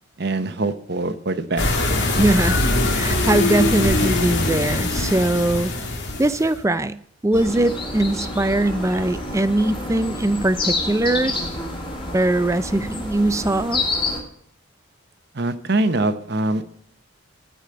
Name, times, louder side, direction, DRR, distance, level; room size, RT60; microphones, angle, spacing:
voice 1, 0.2-1.8 15.3-16.6, right 2 dB, 55° right, 11 dB, 0.9 m, -23 dB
sound 1, 1.6-6.5, left 2 dB, 60° left, 2.1 m, -22 dB
voice 2, 2.2-2.6 2.9-5.7 6.2-7.0 7.2-11.3 12.1-13.8, right 1 dB, 15° right, 13 dB, 0.5 m, -21 dB
sound 2, 7.3-14.2, left 2 dB, 25° left, 2.8 m, -28 dB
13.5 x 5.1 x 7.8 m, 0.63 s
head